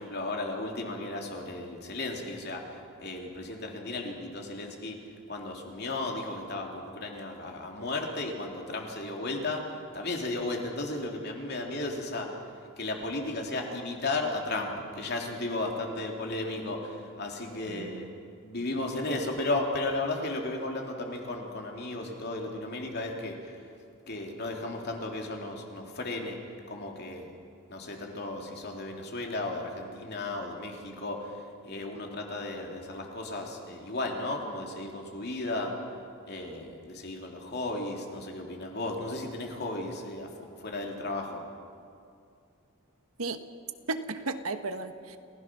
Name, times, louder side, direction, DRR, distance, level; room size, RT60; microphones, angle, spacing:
voice 1, 0.0-5.0 5.3-12.4 12.8-18.1 18.4-23.6 24.1-26.4 26.7-27.3 27.7-31.4 31.6-35.7 36.3-40.3 40.6-41.4, left 2 dB, 50° left, 1 dB, 3.0 m, -34 dB
voice 2, 17.7-18.1 43.2-43.4 43.9-45.2, right 3 dB, 90° right, 8 dB, 1.3 m, -34 dB
29.5 x 16.0 x 6.2 m, 2.4 s
head